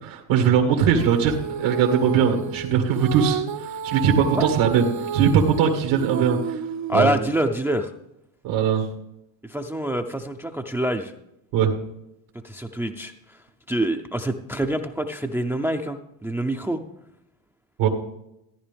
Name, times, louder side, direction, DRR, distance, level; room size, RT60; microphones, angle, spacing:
voice 1, 0.0-6.6 6.9-7.1 8.4-8.9 11.5-11.7 17.8-17.9, right 7 dB, 80° right, 3 dB, 1.9 m, -20 dB
Female singing, 0.9-7.4, right 7 dB, 40° right, 0.7 m, -31 dB
voice 2, 6.9-7.9 9.4-11.1 12.4-13.1 13.7-16.8, right 1 dB, 5° right, 5 dB, 0.6 m, -26 dB
14.5 x 9.7 x 3.5 m, 0.83 s
supercardioid pair, 100°, 47 cm